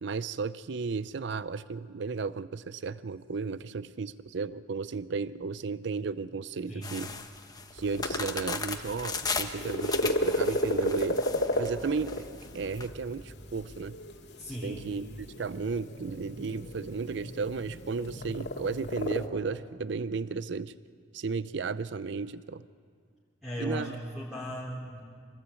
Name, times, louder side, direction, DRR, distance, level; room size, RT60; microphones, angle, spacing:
voice 1, 0.0-7.1 7.7-11.3 11.5-12.3 12.5-14.0 14.6-20.7 21.1-22.6 23.6-23.9, right 4 dB, 70° right, 15 dB, 0.5 m, -34 dB
sound 1, 6.8-12.9, left 4 dB, 20° left, 1.2 m, -36 dB
sound 2, 7.8-19.3, left 1 dB, 65° left, 2.2 m, -34 dB
voice 2, 14.4-14.9 23.4-25.0, equal, ahead, -7 dB, 3.4 m, -37 dB
24.5 x 18.0 x 8.3 m, 2.2 s
head